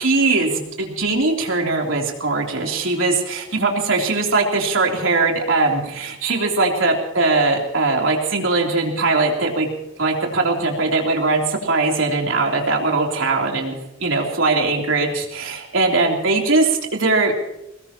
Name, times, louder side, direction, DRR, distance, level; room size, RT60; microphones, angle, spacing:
voice 1, 0.0-9.7 10.0-17.3, right 3 dB, 70° right, 0 dB, 3.5 m, -20 dB
23.5 x 20.0 x 3.0 m, 0.86 s
head